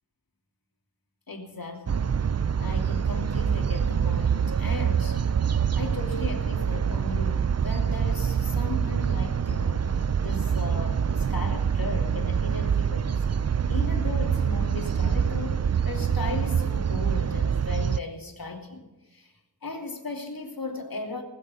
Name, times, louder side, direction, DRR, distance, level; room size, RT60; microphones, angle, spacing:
voice 1, 1.3-2.2 2.6-13.2 13.7-19.3 19.6-21.2, left 3 dB, 65° left, 2 dB, 2.8 m, -37 dB
sound 1, 1.9-18.0, right 7 dB, 40° right, 0.5 m, -25 dB
19.5 x 8.2 x 7.0 m, 1.2 s
wide cardioid pair, 40°, 38 cm